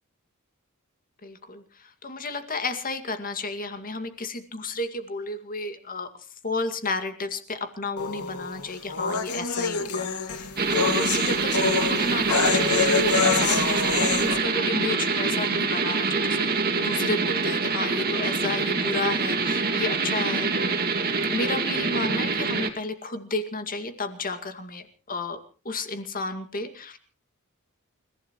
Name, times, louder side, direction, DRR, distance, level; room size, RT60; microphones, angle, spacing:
voice 1, 1.2-6.1 6.4-16.4 16.8-21.0 21.3-25.4 25.6-27.0, left 3 dB, 40° left, 8 dB, 2.2 m, -32 dB
sound 1, 8.0-14.4, left 5 dB, 90° left, 2.3 m, -26 dB
sound 2, 10.6-22.7, right 4 dB, 45° right, 2.3 m, -25 dB
29.5 x 15.5 x 3.1 m, 0.37 s
head